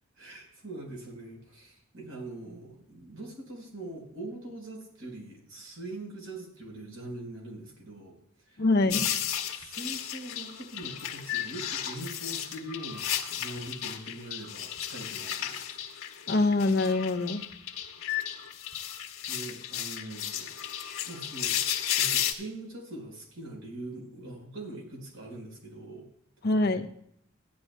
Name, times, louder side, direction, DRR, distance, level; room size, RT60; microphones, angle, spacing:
voice 1, 0.2-9.2 9.5-15.7 19.3-20.5 21.0-21.7 22.0-26.1, right 1 dB, 80° right, -1 dB, 4.4 m, -42 dB
voice 2, 8.6-9.1 16.3-17.5 26.4-26.9, left 2 dB, 50° left, 7 dB, 0.8 m, -24 dB
sound 1, 8.9-22.3, left 10 dB, 80° left, 1.5 m, -34 dB
15.5 x 11.5 x 2.2 m, 0.70 s
head